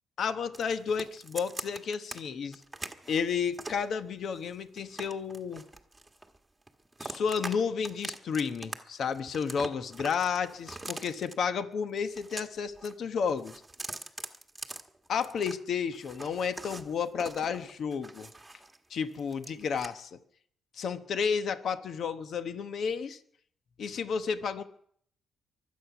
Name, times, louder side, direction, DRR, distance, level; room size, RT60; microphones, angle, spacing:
voice 1, 0.2-2.6 3.1-5.6 7.0-13.6 15.1-18.3 18.9-20.2 20.7-23.2 23.8-24.6, left 6 dB, 60° left, 10 dB, 1.0 m, -32 dB
sound 1, 0.5-2.2 2.5-3.9 4.4-6.4 6.7-7.6 7.8-8.8 9.0-11.3 12.0-12.9 13.2-15.6 15.9-18.8 19.1-19.9, right 2 dB, 10° right, 1.6 m, -43 dB
24.0 x 8.6 x 6.0 m, 0.62 s
cardioid pair, 90°, 0 cm